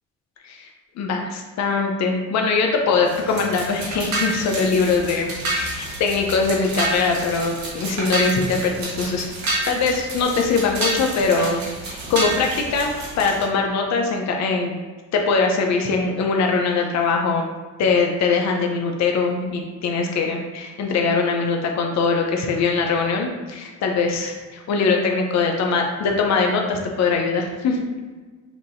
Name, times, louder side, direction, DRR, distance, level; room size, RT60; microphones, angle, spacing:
voice 1, 1.0-9.2 9.6-14.8 15.1-17.5 17.8-27.8, left 4 dB, 65° left, 2 dB, 0.7 m, -22 dB
sound 1, 3.0-13.4, right 2 dB, 70° right, 1.4 m, -29 dB
5.9 x 2.7 x 2.6 m, 1.4 s
cardioid pair, 90°, 30 cm